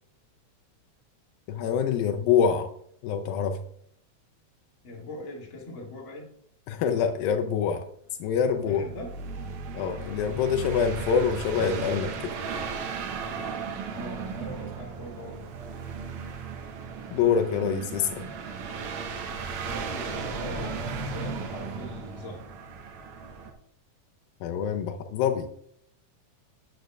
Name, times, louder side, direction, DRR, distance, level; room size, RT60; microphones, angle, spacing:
voice 1, 1.5-2.7 3.0-3.6 6.7-7.9 8.2-8.8 9.7-12.3 17.1-18.2 24.4-25.5, left 7 dB, 85° left, 5 dB, 2.4 m, -25 dB
voice 2, 4.8-6.3 8.6-9.1 13.9-15.5 19.6-22.4, left 1 dB, 40° left, -2 dB, 2.5 m, -41 dB
sound 1, 8.3-23.5, right 4 dB, 70° right, 2.5 m, -36 dB
12.5 x 9.0 x 2.3 m, 0.67 s
omnidirectional pair, 4.1 m